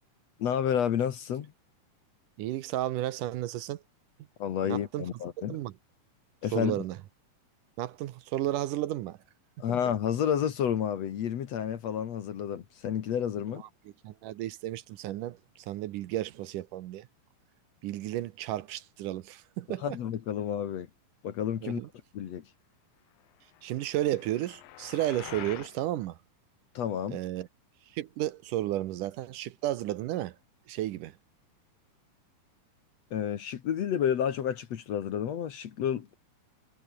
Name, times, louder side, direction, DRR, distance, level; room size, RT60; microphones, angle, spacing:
voice 1, 0.4-1.5 4.4-5.6 6.4-6.8 9.6-13.6 19.8-20.9 21.2-21.8 22.1-22.5 26.7-27.2 33.1-36.1, left 9 dB, 55° left, 2.2 m, -30 dB
voice 2, 2.4-3.8 4.6-5.1 5.5-5.7 6.5-7.0 7.8-9.2 9.7-9.8 14.0-17.1 17.8-20.0 21.6-21.9 23.6-26.2 27.1-27.5 27.9-30.4 30.7-31.1, right 14 dB, 75° right, 2.3 m, -33 dB
sound 1, 23.5-25.8, left 14 dB, 80° left, 2.9 m, -46 dB
omnidirectional pair, 4.0 m